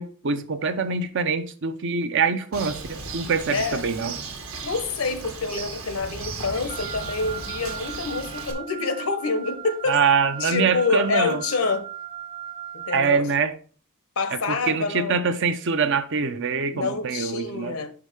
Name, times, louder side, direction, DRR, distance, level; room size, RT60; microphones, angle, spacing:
voice 1, 0.0-4.1 9.9-11.4 12.9-13.5 14.3-17.7, right 5 dB, 60° right, 0.7 m, -24 dB
Bird, 2.5-8.5, right 4 dB, 80° right, 1.3 m, -36 dB
voice 2, 3.5-3.9 4.6-10.0 10.4-11.9 12.7-13.3 14.2-15.2 16.7-17.9, left 4 dB, 80° left, 0.9 m, -27 dB
Wind instrument woodwind instrument, 6.7-13.1, right 10 dB, 25° right, 0.6 m, -38 dB
5.5 x 4.8 x 5.1 m
head